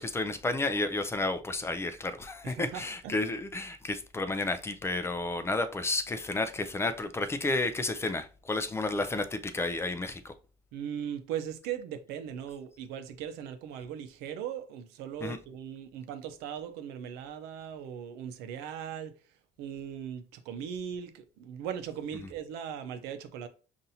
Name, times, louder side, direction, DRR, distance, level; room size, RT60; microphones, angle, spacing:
voice 1, 0.0-10.3 15.2-15.4, left 2 dB, 15° left, 0.3 m, -31 dB
voice 2, 2.4-3.2 10.7-19.1 19.6-23.5, right 9 dB, 90° right, 0.6 m, -39 dB
5.5 x 2.5 x 2.7 m
cardioid pair, 130°, 16 cm